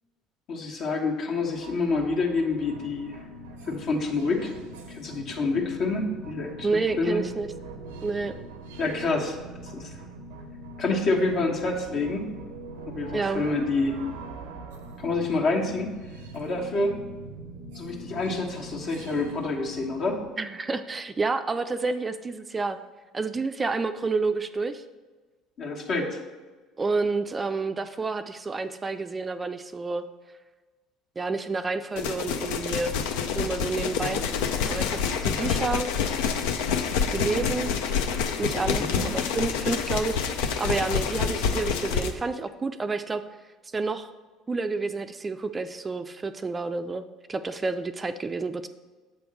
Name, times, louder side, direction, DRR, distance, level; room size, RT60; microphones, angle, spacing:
voice 1, 0.5-3.2 3.6-4.5 4.9-7.2 8.8-9.9 10.8-12.3 12.9-14.0 15.0-16.0 16.3-16.9 17.7-20.2 25.6-26.2 38.8-39.0, left 3 dB, 55° left, -1 dB, 1.3 m, -27 dB
sound 1, 1.4-20.3, right 2 dB, 80° right, 0.6 m, -42 dB
voice 2, 6.6-7.5 8.0-8.3 13.1-13.4 20.4-22.8 23.1-24.8 26.8-30.0 31.2-32.9 33.3-34.2 34.7-35.9 37.1-37.7 38.4-43.2 43.7-44.1 44.5-47.0 47.3-48.7, right 3 dB, 25° right, 9 dB, 0.4 m, -29 dB
sound 2, 32.0-42.1, left 6 dB, 70° left, 0.5 m, -27 dB
7.6 x 3.5 x 6.1 m, 1.3 s
hypercardioid pair, 65°, 0 cm